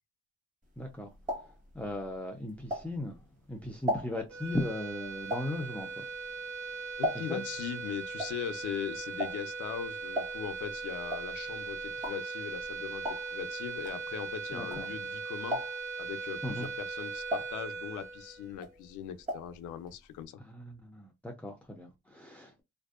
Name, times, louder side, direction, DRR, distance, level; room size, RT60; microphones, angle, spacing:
sound 1, 0.7-3.3 3.6-7.6 7.8-15.1 15.4-16.0 16.5-18.2 18.5-19.6 19.8-19.9 20.2-20.3, equal, 25° right, 1.1 m, -38 dB
voice 1, 0.8-1.1 1.4-3.2 3.5-6.1 7.1-7.4 14.5-14.9 16.4-16.7 20.4-22.6, left 1 dB, 5° left, 0.4 m, -38 dB
sound 2, 4.3-18.9, right 4 dB, 75° right, 0.6 m, -39 dB
voice 2, 7.0-15.6 16.0-20.4, left 9 dB, 80° left, 0.5 m, -40 dB
2.5 x 2.1 x 2.3 m
cardioid pair, 90°, 30 cm